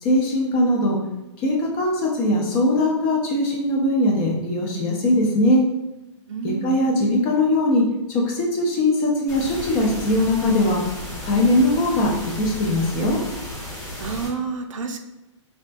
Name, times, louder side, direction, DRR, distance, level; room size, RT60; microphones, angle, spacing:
voice 1, 0.0-1.0 1.4-5.6 6.4-10.8 11.2-13.2, left 1 dB, 15° left, -1 dB, 0.3 m, -20 dB
voice 2, 6.3-7.0 14.0-15.0, right 4 dB, 90° right, 5 dB, 0.5 m, -29 dB
sound 1, 9.3-14.3, left 1 dB, ahead, 1.0 m, -34 dB
5.0 x 2.2 x 2.5 m, 0.97 s
hypercardioid pair, 170°, 16 cm